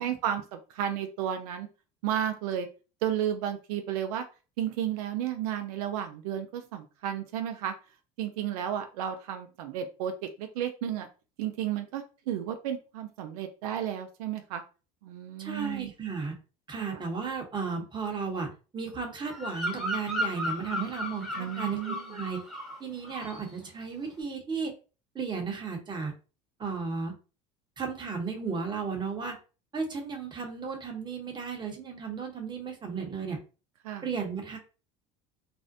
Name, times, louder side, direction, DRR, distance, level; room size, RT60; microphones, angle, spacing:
voice 1, 0.0-1.7 2.0-2.7 3.0-4.2 4.6-7.7 8.2-10.1 10.4-11.1 11.4-14.6 15.0-15.9 16.8-17.0 21.3-22.2 33.8-34.1, right 10 dB, 80° right, 6 dB, 0.4 m, -33 dB
voice 2, 15.4-16.3 16.7-18.5 18.7-22.4 22.8-24.7 25.1-26.1 26.6-27.1 27.8-29.4 29.7-33.4 34.0-34.6, right 5 dB, 25° right, 2 dB, 0.9 m, -34 dB
Bird vocalization bird call bird song, 19.2-22.8 23.0-23.5, equal, ahead, 0.9 m, -35 dB
2.5 x 2.1 x 2.5 m, 0.33 s
supercardioid pair, 95°, 19 cm